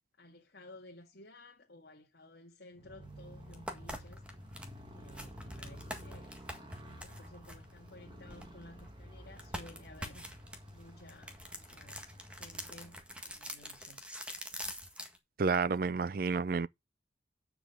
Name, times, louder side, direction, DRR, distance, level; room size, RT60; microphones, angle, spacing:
voice 1, 0.2-4.2 4.9-10.4 10.7-14.0, left 1 dB, 70° left, 1.9 m, -55 dB
Motorcycle, 2.7-13.4, equal, 25° right, 2.0 m, -51 dB
Pocky box and pack open, 3.0-3.1 3.5-8.9 9.4-15.2, equal, 5° right, 1.7 m, -45 dB
voice 2, 15.4-16.7, right 4 dB, 55° right, 0.4 m, -30 dB
9.1 x 5.1 x 5.8 m
head